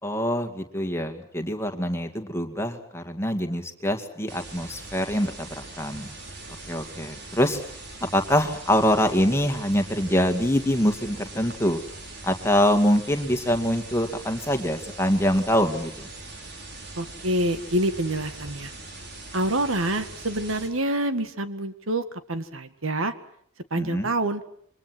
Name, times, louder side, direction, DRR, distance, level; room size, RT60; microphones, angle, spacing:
voice 1, 0.0-6.1 6.7-7.6 8.1-11.8 12.2-16.1 23.8-24.1, equal, 10° left, 6 dB, 2.2 m, -24 dB
sound 1, 4.3-20.7, right 2 dB, 50° right, 5.8 m, -41 dB
voice 2, 17.0-18.7 19.3-23.1 23.7-24.4, right 1 dB, 70° right, 10 dB, 1.8 m, -27 dB
28.5 x 24.0 x 6.2 m, 0.65 s
head